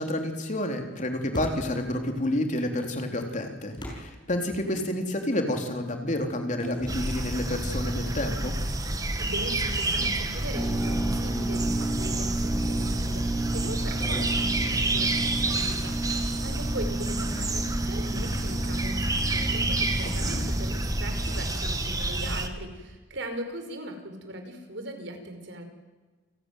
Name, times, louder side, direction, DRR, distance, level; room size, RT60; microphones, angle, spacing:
voice 1, 0.0-8.6 20.3-20.5, left 1 dB, 40° left, 4 dB, 3.7 m, -29 dB
sound 1, 1.3-2.0 3.7-5.1 6.6-7.9 8.4-8.6 10.0-11.5 14.0-15.6, equal, 25° left, 7.2 m, -41 dB
sound 2, 6.9-22.5, right 2 dB, 20° right, 2.0 m, -29 dB
voice 2, 9.2-25.6, equal, 65° right, 6 dB, 5.2 m, -39 dB
sound 3, 10.5-21.4, right 2 dB, 10° left, 4.3 m, -32 dB
29.5 x 18.5 x 9.4 m, 1.3 s
head